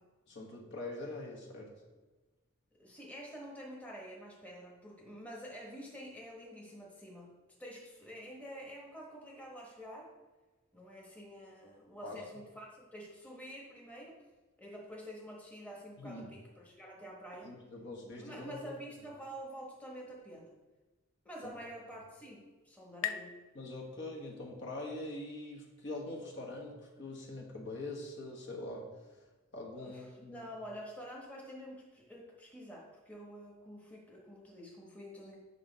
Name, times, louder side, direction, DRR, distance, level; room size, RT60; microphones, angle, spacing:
voice 1, 0.3-1.7 12.0-12.2 16.0-16.3 17.4-18.7 23.5-28.9 29.5-30.5, left 2 dB, 55° left, -2 dB, 1.4 m, -43 dB
voice 2, 2.7-10.1 10.7-14.2 14.6-17.5 18.2-20.6 21.2-23.5 29.8-35.4, equal, 5° left, -3 dB, 1.1 m, -48 dB
sound 1, 21.6-24.9, left 9 dB, 70° left, 0.4 m, -45 dB
8.2 x 5.5 x 4.0 m, 1.2 s
head